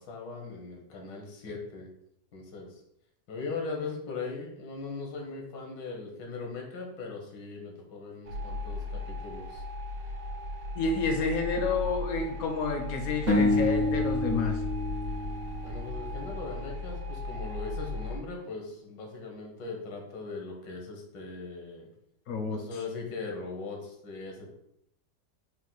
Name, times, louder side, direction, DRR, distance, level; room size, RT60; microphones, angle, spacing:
voice 1, 0.0-1.9 2.3-2.8 3.3-9.6 15.6-21.9 22.5-24.5, left 4 dB, 90° left, 1 dB, 1.6 m, -39 dB
sound 1, 8.2-18.2, left 2 dB, 90° right, 1.3 m, -37 dB
voice 2, 10.8-14.6 22.3-22.7, left 4 dB, 70° left, 5 dB, 0.8 m, -29 dB
sound 2, 13.3-16.5, left 2 dB, 50° right, 0.8 m, -28 dB
4.4 x 2.2 x 3.8 m, 0.76 s
omnidirectional pair, 1.9 m